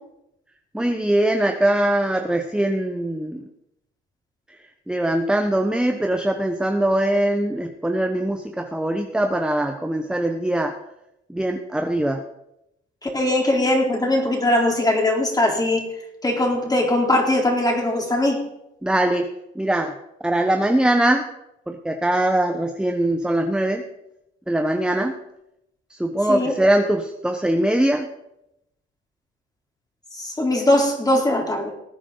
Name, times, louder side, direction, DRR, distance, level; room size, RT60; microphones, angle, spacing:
voice 1, 0.7-3.4 4.9-10.7 11.3-12.2 18.8-19.3 19.5-19.9 20.2-21.3 21.7-23.8 24.5-25.2 25.9-28.1, right 1 dB, 5° right, 4 dB, 1.1 m, -22 dB
voice 2, 13.0-15.8 16.2-18.4 26.3-26.6 30.1-31.7, left 1 dB, 20° left, 1 dB, 3.7 m, -20 dB
19.5 x 8.7 x 4.0 m, 0.84 s
cardioid pair, 90°, 20 cm